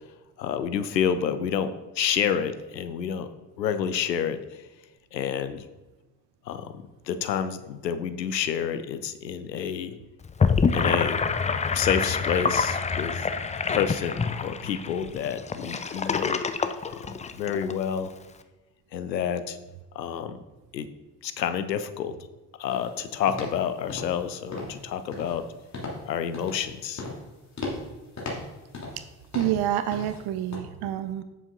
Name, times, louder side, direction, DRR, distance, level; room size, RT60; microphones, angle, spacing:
voice 1, 0.4-3.3 3.6-4.7 5.1-5.7 6.5-9.9 10.7-11.2 11.7-13.3 13.7-16.4 16.9-18.1 18.9-19.6 19.9-20.4 20.7-20.9 21.2-22.2 22.6-25.5 26.1-27.0, left 8 dB, 85° left, 11 dB, 0.6 m, -29 dB
Gurgling / Sink (filling or washing), 10.2-17.7, left 5 dB, 15° left, 0.4 m, -26 dB
sound 1, 22.7-22.9 23.3-23.6 23.9-24.2 24.5-24.8 25.1-25.4 25.7-26.0 26.3-26.7 27.0-27.3 27.6-27.9 28.2-29.1 29.3-29.6 29.9-30.2 30.5-30.6, left 2 dB, 35° left, 2.7 m, -36 dB
voice 2, 29.3-31.2, right 12 dB, 55° right, 12 dB, 0.6 m, -27 dB
8.1 x 7.0 x 3.8 m, 1.1 s
figure-of-eight pair, 45°, 49 cm